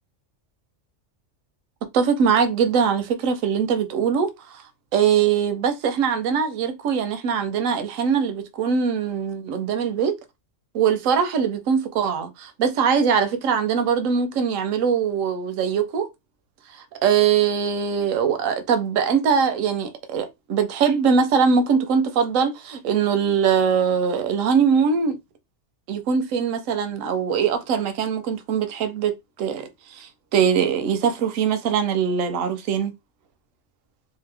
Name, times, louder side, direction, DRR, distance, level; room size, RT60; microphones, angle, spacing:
voice 1, 1.9-4.6 4.9-10.1 10.7-16.1 17.0-25.2 25.9-32.9, right 6 dB, 90° right, 1.0 m, -22 dB
2.9 x 2.0 x 3.3 m
omnidirectional pair, 1.3 m